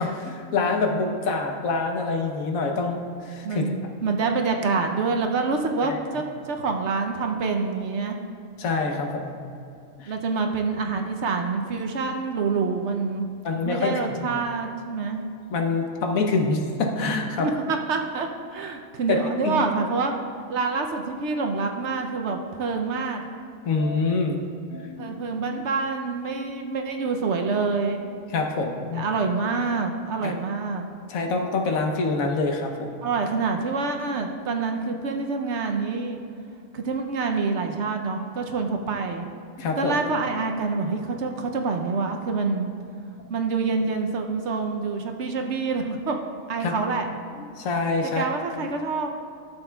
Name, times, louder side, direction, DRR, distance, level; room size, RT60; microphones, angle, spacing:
voice 1, 0.0-3.7 5.9-6.0 8.6-9.4 10.0-10.1 13.4-13.9 15.5-17.5 19.1-19.5 23.6-24.4 24.7-25.1 28.3-29.1 30.2-30.3 31.1-33.0 39.6-40.0 46.6-46.7 47.4-48.2, left 3 dB, 80° left, 2 dB, 1.3 m, -26 dB
voice 2, 3.4-8.2 10.1-13.3 13.6-15.2 17.4-20.1 20.5-23.2 25.0-28.0 28.9-30.8 33.0-36.2 36.7-39.3 39.8-42.7 43.3-46.2 46.5-47.1 48.1-49.1, right 4 dB, 65° right, 4 dB, 0.9 m, -26 dB
13.0 x 7.1 x 2.3 m, 2.5 s
omnidirectional pair, 1.4 m